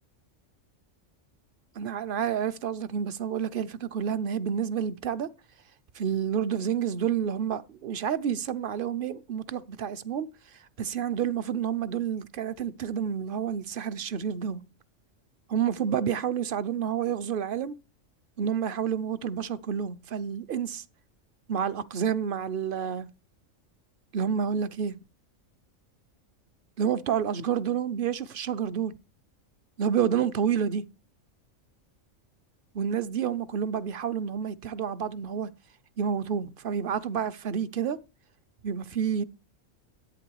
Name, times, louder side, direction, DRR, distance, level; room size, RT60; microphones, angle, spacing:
voice 1, 1.8-5.3 5.9-10.3 10.8-14.6 15.5-17.7 18.4-20.8 21.5-23.1 24.1-25.0 26.8-28.9 29.8-30.8 32.7-35.5 36.0-38.0 38.6-39.2, right 8 dB, 50° right, 0.8 m, -29 dB
10.5 x 8.9 x 4.7 m
omnidirectional pair, 1.3 m